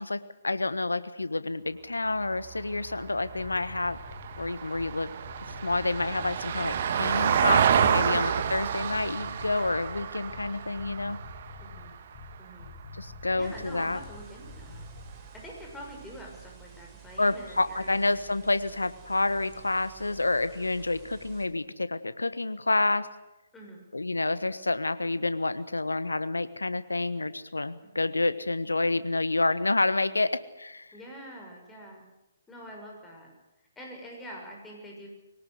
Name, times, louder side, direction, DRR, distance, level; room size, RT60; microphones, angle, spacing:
voice 1, 0.0-4.0 4.4-5.1 5.6-11.2 12.9-14.0 17.2-23.1 23.9-30.9, left 2 dB, 85° left, 14 dB, 1.3 m, -29 dB
Vehicle, 2.2-12.7 15.0-15.1, right 8 dB, 50° right, 1.6 m, -29 dB
sound 1, 3.4-15.2, left 4 dB, 35° left, 4.6 m, -47 dB
voice 2, 11.6-11.9 12.4-12.7 13.3-14.9 15.3-18.2 23.5-23.8 30.9-32.0 32.5-33.3 33.7-35.1, equal, 10° left, 0 dB, 6.5 m, -45 dB
sound 2, 13.4-21.5, right 10 dB, 20° right, 4.6 m, -51 dB
22.0 x 18.5 x 8.1 m, 0.97 s
figure-of-eight pair, 130°, 0 cm